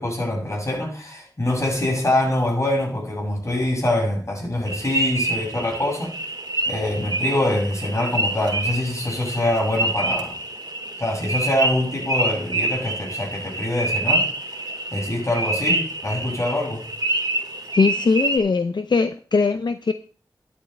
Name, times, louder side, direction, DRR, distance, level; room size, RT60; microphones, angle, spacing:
voice 1, 0.0-6.1 6.7-10.4 11.0-14.3 14.9-16.8, left 1 dB, 40° left, -1 dB, 7.0 m, -24 dB
sound 1, 4.7-18.4, right 2 dB, 65° right, 3.8 m, -27 dB
voice 2, 17.7-19.9, left 4 dB, 80° left, 9 dB, 0.6 m, -20 dB
12.5 x 11.0 x 3.4 m, 0.40 s
wide cardioid pair, 65°, 8 cm